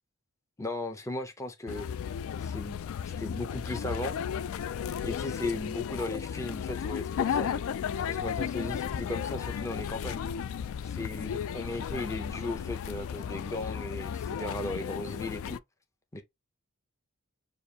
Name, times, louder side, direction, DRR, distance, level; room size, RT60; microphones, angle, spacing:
voice 1, 0.6-1.8 2.4-2.8 3.2-4.2 5.0-7.6 8.0-10.2 10.8-15.6 16.1-16.2, left 2 dB, 15° left, 0.7 m, -36 dB
sound 1, 1.7-15.6, left 8 dB, 65° left, 0.3 m, -34 dB
6.6 x 2.6 x 2.8 m
head